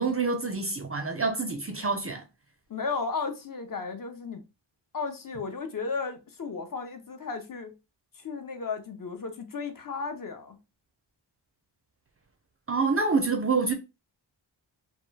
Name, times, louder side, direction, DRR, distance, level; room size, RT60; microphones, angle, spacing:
voice 1, 0.0-2.2 12.7-13.7, right 4 dB, 30° right, 0.4 m, -27 dB
voice 2, 2.7-4.4 4.9-7.7 8.1-10.6, left 4 dB, 45° left, 0.5 m, -34 dB
2.2 x 2.1 x 3.1 m
wide cardioid pair, 85°, 47 cm